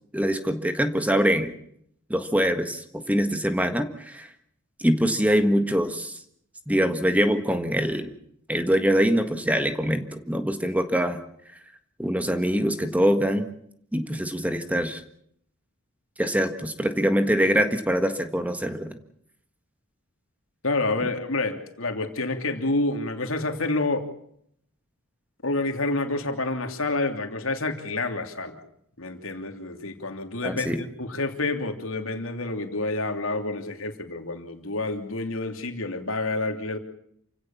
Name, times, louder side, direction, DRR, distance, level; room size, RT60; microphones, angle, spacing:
voice 1, 0.1-1.5 2.1-4.3 4.8-6.2 6.7-8.1 8.5-11.2 12.0-13.5 13.9-15.0 16.2-19.0 30.4-30.8, equal, 5° right, 8 dB, 1.6 m, -24 dB
voice 2, 20.6-24.1 25.4-28.6 29.0-36.8, left 2 dB, 75° left, 5 dB, 3.0 m, -28 dB
28.5 x 16.5 x 7.3 m, 0.70 s
head